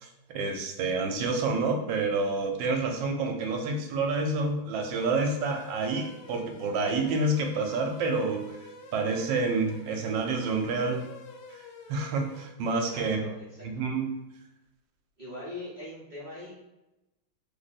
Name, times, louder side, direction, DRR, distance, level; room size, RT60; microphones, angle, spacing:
voice 1, 0.0-8.5 8.9-11.0 11.5-11.6 11.9-13.2 13.6-14.1, right 3 dB, 80° right, 3 dB, 1.3 m, -28 dB
sound 1, 4.9-12.5, left 4 dB, 90° left, 1.3 m, -48 dB
voice 2, 12.8-13.6 15.2-16.5, left 1 dB, 45° right, -9 dB, 0.5 m, -41 dB
3.2 x 2.1 x 4.0 m, 0.98 s
omnidirectional pair, 2.1 m